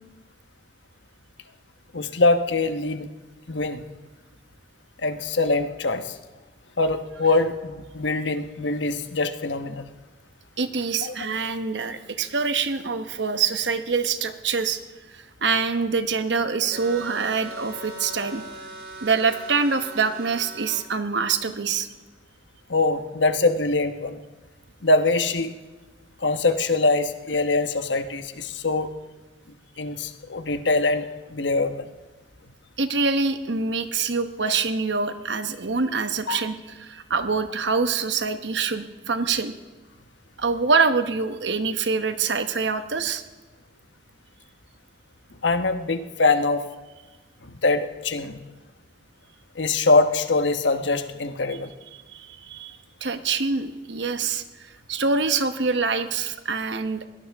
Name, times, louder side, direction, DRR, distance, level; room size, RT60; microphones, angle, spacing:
voice 1, 1.9-3.1 3.5-3.8 5.0-6.2 6.8-9.8 11.0-11.1 22.7-24.2 24.8-25.5 26.2-28.9 29.8-31.9 36.3-36.4 45.4-46.6 47.4-48.4 49.5-51.7, left 3 dB, 80° left, 8 dB, 1.1 m, -23 dB
voice 2, 10.6-14.8 15.1-18.4 19.0-21.9 32.8-39.5 40.4-43.2 52.1-57.1, right 4 dB, 70° right, 9 dB, 1.1 m, -25 dB
sound 1, 16.7-20.8, right 2 dB, 55° right, 4.4 m, -39 dB
21.5 x 17.5 x 3.6 m, 1.2 s
head